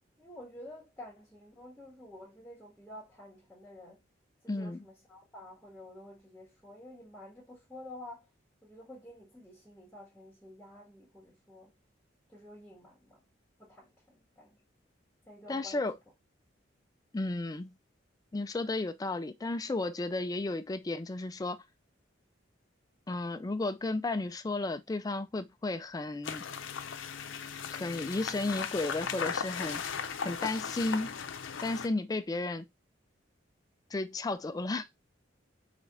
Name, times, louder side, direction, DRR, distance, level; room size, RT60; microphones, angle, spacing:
voice 1, 0.2-4.0 4.4-8.3 8.6-11.7 12.3-13.2 13.6-14.6 15.3-15.8, left 1 dB, ahead, 1.9 m, -50 dB
voice 2, 4.5-4.8 15.5-15.9 17.1-17.7 18.3-21.6 23.1-26.4 27.7-29.8 30.2-31.2 31.6-32.7 33.9-34.9, left 2 dB, 20° left, 0.3 m, -33 dB
sound 1, 26.2-31.9, left 6 dB, 85° left, 0.6 m, -37 dB
5.0 x 3.6 x 2.6 m
head